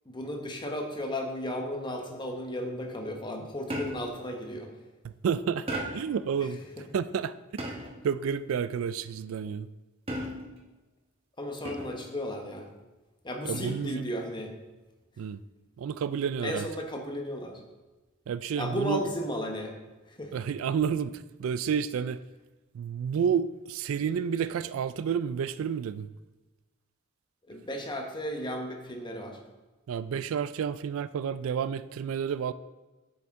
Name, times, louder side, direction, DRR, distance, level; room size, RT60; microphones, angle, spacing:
voice 1, 0.1-4.7 6.4-6.5 11.4-12.7 13.2-14.5 16.4-17.6 18.6-19.7 20.1-20.3 27.5-29.4, left 1 dB, 25° left, 3 dB, 1.0 m, -34 dB
sound 1, 3.7-4.2 5.7-6.2 7.6-8.1 10.1-10.6 11.6-12.1 13.5-13.9, right 1 dB, 30° right, 1.2 m, -36 dB
voice 2, 5.0-5.7 5.9-6.6 6.9-7.4 8.0-9.7 13.4-14.1 15.2-15.4 15.8-16.7 18.3-19.0 20.3-22.2 22.7-26.1 29.9-32.5, right 7 dB, 85° right, 15 dB, 0.3 m, -30 dB
8.0 x 6.9 x 3.6 m, 1.2 s
head